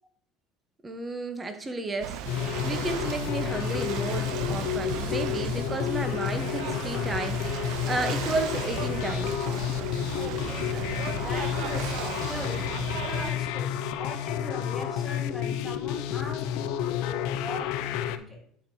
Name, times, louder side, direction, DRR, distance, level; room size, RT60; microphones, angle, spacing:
voice 1, 0.8-2.2 2.6-9.4, right 2 dB, 20° right, 7 dB, 0.8 m, -33 dB
Ocean / Boat Water vehicle, 2.0-13.3, right 9 dB, 70° right, 0.5 m, -36 dB
sound 1, 2.2-18.2, left 10 dB, 75° left, 0.4 m, -30 dB
voice 2, 10.1-18.4, left 1 dB, 5° left, -1 dB, 2.5 m, -41 dB
9.3 x 4.5 x 2.7 m, 0.62 s
supercardioid pair, 100°, 0 cm